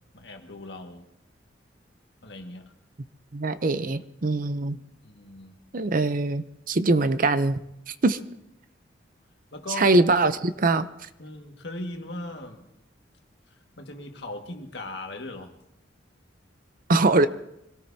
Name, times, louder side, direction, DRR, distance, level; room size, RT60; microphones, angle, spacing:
voice 1, 0.1-1.0 2.2-2.7 5.0-5.6 9.5-9.9 11.2-12.7 13.5-15.5, left 2 dB, 65° left, 3 dB, 1.9 m, -39 dB
voice 2, 3.3-4.8 5.7-7.6 7.9-8.2 9.8-11.1 16.9-17.3, right 2 dB, 50° right, 12 dB, 0.7 m, -22 dB
26.0 x 18.0 x 2.8 m, 0.80 s
head